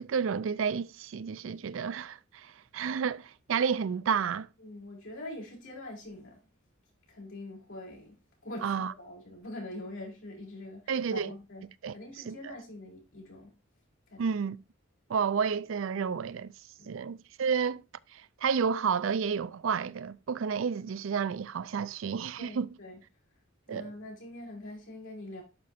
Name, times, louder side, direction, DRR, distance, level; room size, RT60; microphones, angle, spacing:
voice 1, 0.0-4.5 8.6-8.9 10.9-11.3 11.8-12.6 14.2-14.6 15.1-16.5 16.9-17.8 18.1-22.7 23.7-23.9, right 6 dB, 70° right, 0.4 m, -31 dB
voice 2, 4.6-6.4 7.1-8.2 8.4-11.7 11.9-13.5 14.1-14.2 16.8-16.9 22.4-23.0 23.7-25.4, left 1 dB, 75° left, 5.2 m, -44 dB
11.5 x 5.2 x 2.7 m
head